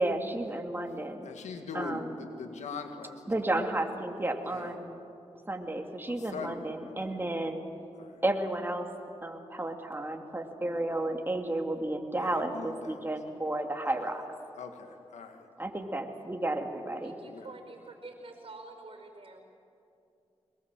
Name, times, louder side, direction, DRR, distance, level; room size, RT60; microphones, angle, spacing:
voice 1, 0.0-1.3 1.7-2.3 3.3-5.0 5.5-7.6 8.2-8.9 9.2-14.2 15.6-17.1, right 1 dB, 20° right, 4 dB, 2.7 m, -32 dB
voice 2, 1.2-3.1 3.6-3.7 4.5-4.8 6.3-6.6 6.9-7.0 8.0-8.1 12.2-13.0 13.9-14.0 14.6-15.5 17.2-17.5, left 4 dB, 90° left, 6 dB, 1.9 m, -41 dB
voice 3, 17.0-19.4, right 3 dB, 50° right, 5 dB, 4.9 m, -47 dB
22.0 x 21.5 x 7.6 m, 2.7 s
cardioid pair, 45°, 12 cm